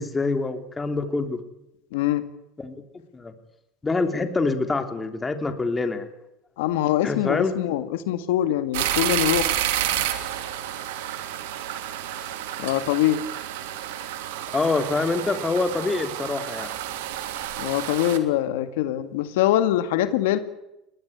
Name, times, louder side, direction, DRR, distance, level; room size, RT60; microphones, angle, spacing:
voice 1, 0.0-1.4 2.6-3.3 3.8-6.1 7.0-7.5 14.5-16.7, left 3 dB, 20° left, 8 dB, 3.4 m, -26 dB
voice 2, 1.9-2.3 6.6-9.5 9.9-10.0 12.6-13.2 17.6-20.4, left 13 dB, 90° left, 11 dB, 1.9 m, -23 dB
sound 1, 8.7-18.2, right 12 dB, 90° right, 3.0 m, -30 dB
22.5 x 19.0 x 8.1 m, 0.88 s
supercardioid pair, 110°, 0 cm